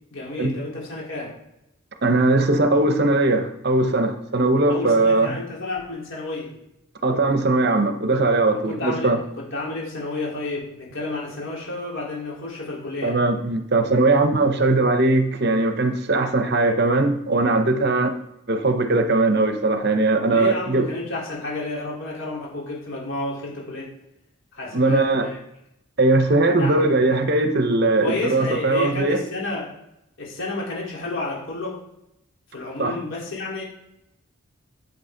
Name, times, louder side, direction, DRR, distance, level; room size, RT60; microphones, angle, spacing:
voice 1, 0.1-1.4 4.7-6.5 8.5-13.2 20.3-23.9 24.5-25.4 26.6-26.9 28.0-29.7 30.2-31.8 32.5-33.6, left 2 dB, 60° left, -4 dB, 3.9 m, -31 dB
voice 2, 2.0-5.4 7.0-9.2 13.0-18.2 18.5-20.9 24.7-25.3 26.0-29.2 32.8-32.9, right 2 dB, 50° right, 8 dB, 0.8 m, -20 dB
10.0 x 8.0 x 3.9 m, 0.82 s
head